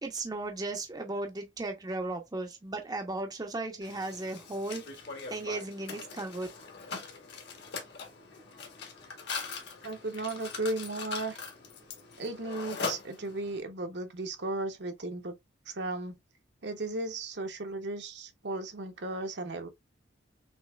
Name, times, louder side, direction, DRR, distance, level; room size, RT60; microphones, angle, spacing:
voice 1, 0.0-6.5, right 2 dB, 20° right, 0.7 m, -36 dB
Mechanisms, 3.8-13.6, left 4 dB, 60° left, 1.4 m, -41 dB
voice 2, 9.8-11.4 12.2-15.4 15.7-16.2 16.6-19.7, right 2 dB, 65° right, 1.0 m, -35 dB
6.3 x 3.0 x 2.3 m
head